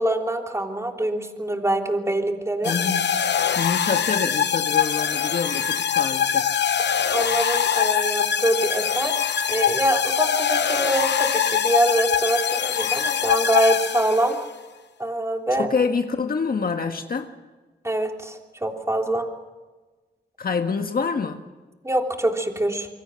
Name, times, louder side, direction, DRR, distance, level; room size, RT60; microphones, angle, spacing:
voice 1, 0.0-2.7 7.1-14.4 15.0-15.7 17.8-19.3 21.8-22.9, right 1 dB, 15° right, 2 dB, 3.3 m, -24 dB
sound 1, 2.6-14.5, left 8 dB, 70° left, 0.9 m, -23 dB
voice 2, 2.6-3.1 3.6-6.5 15.6-17.3 20.4-21.4, left 5 dB, 55° left, 6 dB, 1.7 m, -26 dB
26.5 x 24.0 x 6.5 m, 1.3 s
wide cardioid pair, 110°, 18 cm